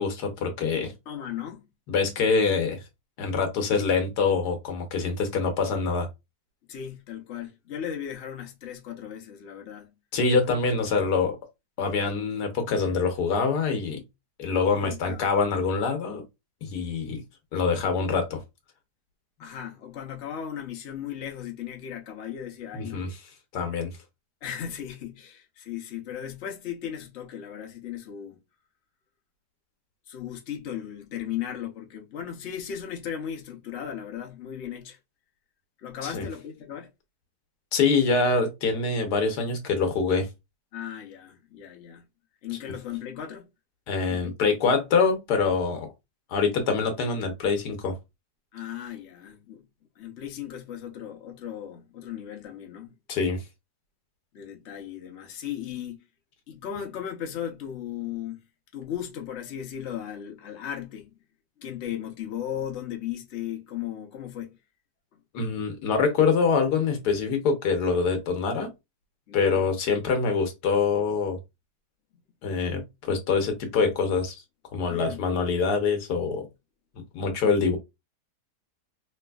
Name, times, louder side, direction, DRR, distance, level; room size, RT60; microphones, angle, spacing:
voice 1, 0.0-0.9 1.9-2.8 3.2-6.1 10.1-11.4 11.8-14.0 14.4-16.2 16.6-17.2 17.5-18.4 22.7-23.1 23.5-23.9 36.0-36.2 37.7-40.3 43.9-45.9 46.3-48.0 53.1-53.4 65.3-68.7 69.3-71.4 72.4-74.3 74.7-76.5 77.1-77.8, left 4 dB, 70° left, 1.4 m, -25 dB
voice 2, 1.1-1.7 6.7-10.0 14.7-15.3 19.4-23.0 24.4-28.4 30.1-35.0 35.8-36.9 40.7-42.0 42.4-43.5 44.1-44.3 48.5-49.6 50.0-52.9 54.3-56.0 56.5-58.4 58.7-61.1 61.6-64.6 69.3-69.7 74.9-75.2, left 9 dB, 55° left, 0.8 m, -36 dB
3.3 x 3.1 x 2.3 m
omnidirectional pair, 1.8 m